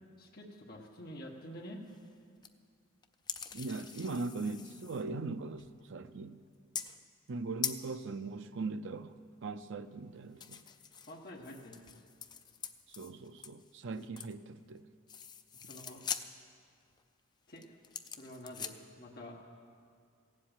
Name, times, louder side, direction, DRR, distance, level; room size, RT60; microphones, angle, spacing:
voice 1, 0.2-1.8 11.1-11.8 15.6-16.0 17.5-17.8 18.2-19.4, equal, 45° left, 1.3 m, -48 dB
sound 1, 1.9-2.1 2.4-2.5 3.0-5.1 5.6-5.8 6.8-7.0 7.3-7.4 7.6-7.9 10.4-14.4 14.7-14.8 15.1-16.3 16.8-17.0 17.6-18.8, left 7 dB, 20° left, 0.4 m, -43 dB
voice 2, 3.5-6.4 7.3-10.6 12.9-14.9, right 3 dB, 55° right, 0.5 m, -40 dB
15.5 x 7.6 x 9.0 m
head